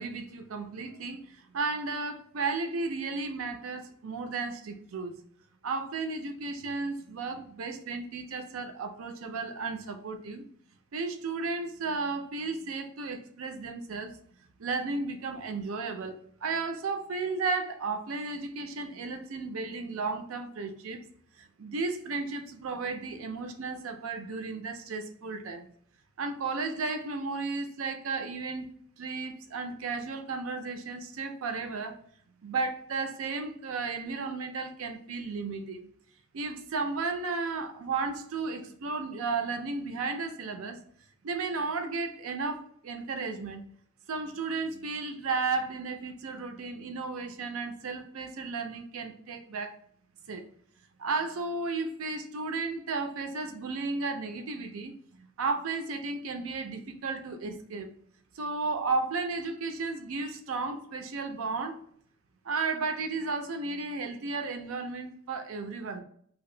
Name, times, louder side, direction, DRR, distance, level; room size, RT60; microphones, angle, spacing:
voice 1, 0.0-5.2 5.6-10.4 10.9-14.2 14.6-16.1 16.4-21.1 21.4-25.7 26.2-28.7 29.0-32.0 32.4-35.9 36.3-40.8 41.2-43.6 44.1-49.7 50.3-50.4 51.0-57.9 58.3-61.8 62.4-66.0, right 4 dB, 85° right, 0.5 m, -34 dB
2.8 x 2.5 x 3.2 m
head